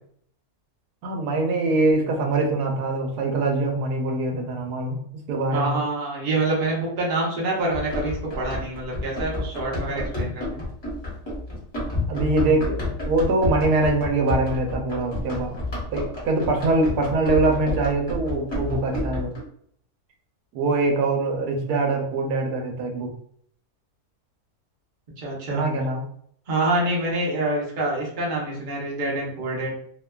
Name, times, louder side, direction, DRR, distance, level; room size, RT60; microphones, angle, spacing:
voice 1, 1.0-5.0 5.3-5.8 9.9-10.0 12.1-12.8 13.1-15.6 15.9-19.3 20.5-23.1 25.5-26.1, right 2 dB, 85° right, 2 dB, 1.1 m, -23 dB
voice 2, 5.5-10.6 25.2-25.6 26.5-29.7, right 2 dB, 45° right, -3 dB, 0.6 m, -26 dB
Run, 7.7-19.4, left 2 dB, 20° left, 0.8 m, -30 dB
2.8 x 2.2 x 2.2 m, 0.64 s
omnidirectional pair, 1.6 m